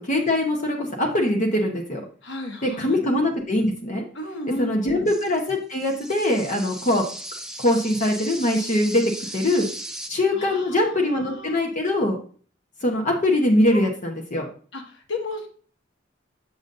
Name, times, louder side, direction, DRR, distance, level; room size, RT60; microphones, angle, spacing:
voice 1, 0.0-2.0 2.6-4.0 4.6-7.0 7.6-9.0 9.3-9.7 10.1-12.2 12.8-14.5, left 1 dB, 40° left, 1 dB, 1.0 m, -22 dB
voice 2, 2.2-3.0 4.1-5.1 10.3-11.6 13.7-13.8 14.7-15.6, left 2 dB, 70° left, 2 dB, 1.5 m, -34 dB
sound 1, 5.1-10.1, right 1 dB, 5° right, 0.6 m, -37 dB
7.0 x 6.6 x 2.6 m, 0.43 s
head